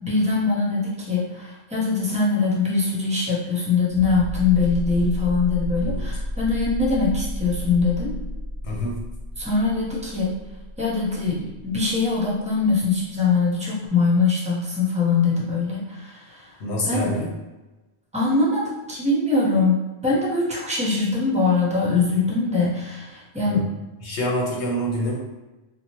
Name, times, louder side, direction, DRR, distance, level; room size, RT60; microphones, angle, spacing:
voice 1, 0.0-8.1 9.4-10.3 10.8-16.5 16.8-17.1 18.1-23.6, left 4 dB, 10° right, -5 dB, 0.5 m, -22 dB
sound 1, 3.9-12.4 13.9-14.0, equal, 65° right, 0.7 m, -31 dB
voice 2, 8.6-9.0 16.6-17.4 23.4-23.6 24.0-25.2, equal, 80° left, -3 dB, 1.0 m, -26 dB
2.7 x 2.1 x 2.9 m, 1.1 s
omnidirectional pair, 1.1 m